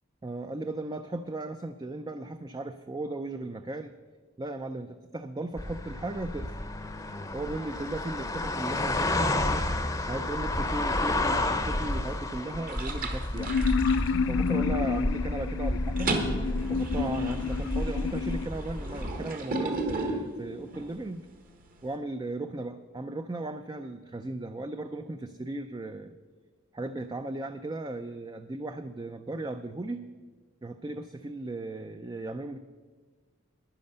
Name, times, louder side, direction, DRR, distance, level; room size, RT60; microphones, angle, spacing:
voice 1, 0.2-3.9 4.4-6.5 7.3-9.7 10.1-13.5 14.3-16.2 16.7-21.3 21.8-26.1 26.7-30.0 30.6-32.6, right 2 dB, 20° right, 8 dB, 0.4 m, -36 dB
sound 1, 5.6-19.2, left 1 dB, 15° left, 0.7 m, -31 dB
sound 2, 11.9-12.3 12.7-14.8 15.1-15.5 15.7-21.0, right 2 dB, 45° right, 1.3 m, -35 dB
Sci-Fi Ambient Sounds, 13.3-18.5, left 6 dB, 65° left, 0.3 m, -30 dB
10.5 x 10.5 x 6.7 m, 1.4 s
head